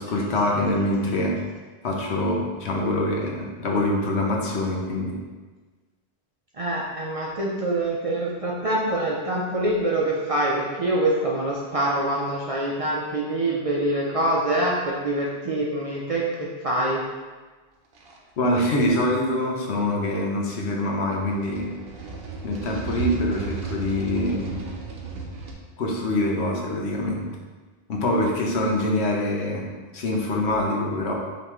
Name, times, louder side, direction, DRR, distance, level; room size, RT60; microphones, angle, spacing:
voice 1, 0.0-1.4 1.8-5.2 18.4-21.7 22.4-24.6 25.8-27.3 27.9-29.7 29.9-31.1, left 1 dB, 75° left, -1 dB, 1.0 m, -24 dB
voice 2, 6.5-17.0, right 1 dB, 45° right, -4 dB, 0.5 m, -25 dB
sound 1, 17.9-18.2 18.9-19.1 21.2-25.5, right 4 dB, 65° right, 0.8 m, -34 dB
5.3 x 3.0 x 3.0 m, 1.3 s
omnidirectional pair, 1.1 m